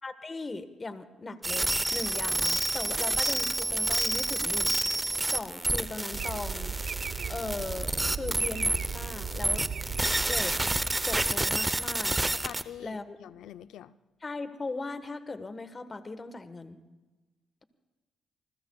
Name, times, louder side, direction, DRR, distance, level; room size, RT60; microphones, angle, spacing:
voice 1, 0.0-4.8 5.3-6.8 7.3-9.6 10.3-10.6 11.1-12.2 12.8-13.2 14.2-16.8, left 3 dB, 30° left, 10 dB, 1.4 m, -38 dB
sound 1, 1.4-12.6, right 2 dB, 15° right, 0.8 m, -29 dB
sound 2, 6.1-11.5, right 6 dB, 55° right, 0.8 m, -37 dB
voice 2, 12.3-13.9, left 11 dB, 80° left, 14 dB, 0.5 m, -44 dB
27.5 x 20.5 x 2.4 m, 1.2 s
cardioid pair, 90°, 0 cm